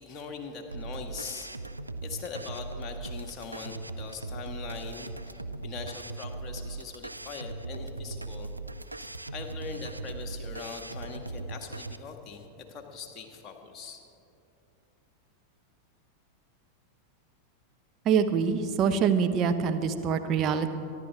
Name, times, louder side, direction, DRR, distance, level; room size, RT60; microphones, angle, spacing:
voice 1, 0.0-1.5 2.0-8.5 8.9-14.0, left 5 dB, 30° left, 3 dB, 1.6 m, -41 dB
sound 1, 0.7-12.0, right 2 dB, 85° right, 0.4 m, -39 dB
voice 2, 18.0-20.7, right 6 dB, 35° right, 7 dB, 0.9 m, -25 dB
24.0 x 11.5 x 3.6 m, 2.7 s
figure-of-eight pair, 90°, 0 cm